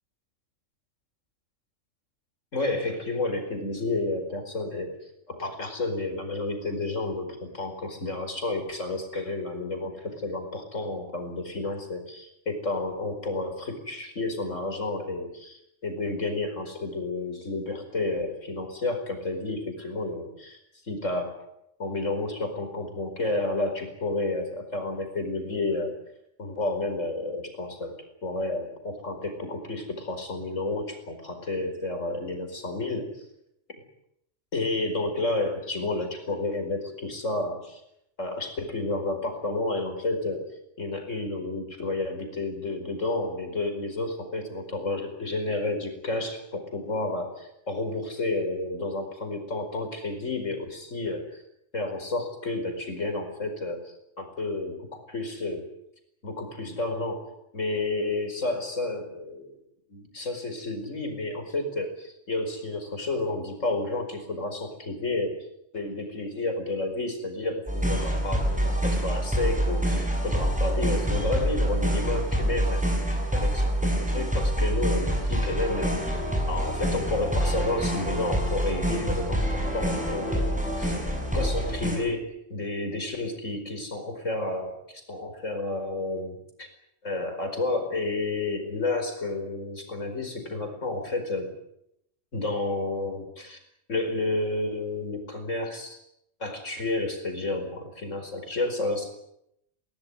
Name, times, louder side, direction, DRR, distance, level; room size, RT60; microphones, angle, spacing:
voice 1, 2.5-5.0 5.3-20.6 20.9-21.4 21.8-26.0 26.4-28.0 28.2-33.3 34.5-37.8 38.2-40.5 40.8-51.4 51.7-55.7 56.2-59.6 59.9-65.5 65.7-72.9 73.3-80.9 81.3-86.7 87.0-91.5 92.3-93.6 93.9-96.0 96.4-99.1, left 2 dB, 85° left, 6 dB, 5.1 m, -31 dB
sound 1, 67.7-82.0, equal, 5° right, 6.7 m, -26 dB
21.5 x 19.5 x 9.9 m, 0.78 s
omnidirectional pair, 1.3 m